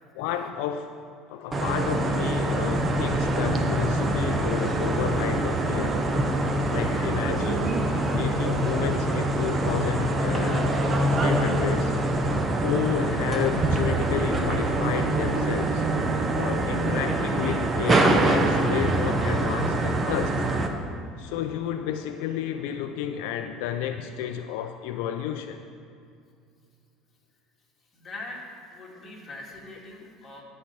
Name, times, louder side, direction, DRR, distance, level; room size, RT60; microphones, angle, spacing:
voice 1, 0.1-1.0 1.3-6.0 6.7-7.8 8.1-10.7 11.1-11.9 12.6-15.8 16.3-20.3 21.2-25.6, left 10 dB, 80° left, 7 dB, 0.4 m, -31 dB
sound 1, 1.5-20.7, right 2 dB, 25° right, 0.9 m, -24 dB
voice 2, 6.6-7.6 8.1-8.2 27.9-28.4 28.7-30.4, left 2 dB, 25° left, -3 dB, 2.4 m, -43 dB
12.5 x 4.4 x 6.9 m, 2.3 s
supercardioid pair, 120°, 0 cm